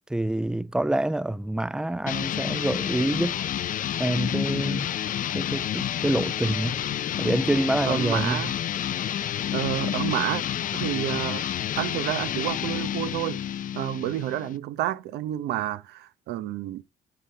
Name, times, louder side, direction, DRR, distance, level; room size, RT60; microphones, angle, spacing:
voice 1, 0.1-3.4 4.0-4.9 5.3-6.8 7.2-8.4, right 1 dB, 5° right, 0.5 m, -26 dB
sound 1, 2.1-14.6, left 10 dB, 55° left, 0.6 m, -29 dB
voice 2, 7.9-8.5 9.5-10.4 10.7-11.4 11.8-13.4 13.7-16.8, right 13 dB, 85° right, 0.8 m, -29 dB
9.7 x 6.7 x 3.3 m
cardioid pair, 100°, 17 cm